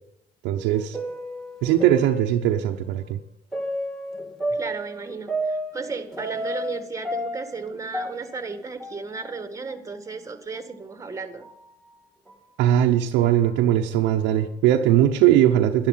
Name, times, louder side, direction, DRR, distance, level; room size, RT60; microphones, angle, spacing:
voice 1, 0.4-1.0 1.6-3.2 12.6-15.9, right 11 dB, 85° right, 2 dB, 0.9 m, -20 dB
sound 1, 0.6-2.8 3.5-6.8 7.0-9.4 9.7-9.8 10.6-10.7 11.4-11.6 12.3-12.4 13.2-13.5, right 1 dB, 5° left, 3.0 m, -32 dB
voice 2, 4.5-11.4, right 4 dB, 15° right, 8 dB, 1.7 m, -34 dB
11.5 x 11.5 x 5.7 m, 0.78 s
cardioid pair, 100°, 18 cm